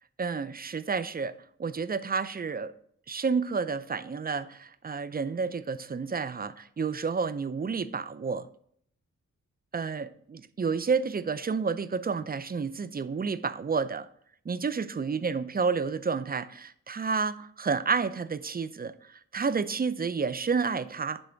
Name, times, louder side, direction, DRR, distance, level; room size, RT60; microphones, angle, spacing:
voice 1, 0.2-1.3 1.6-2.7 3.1-8.5 9.7-14.1 14.5-21.2, right 5 dB, 25° right, 0.5 m, -30 dB
9.7 x 3.4 x 4.5 m
cardioid pair, 45°, 34 cm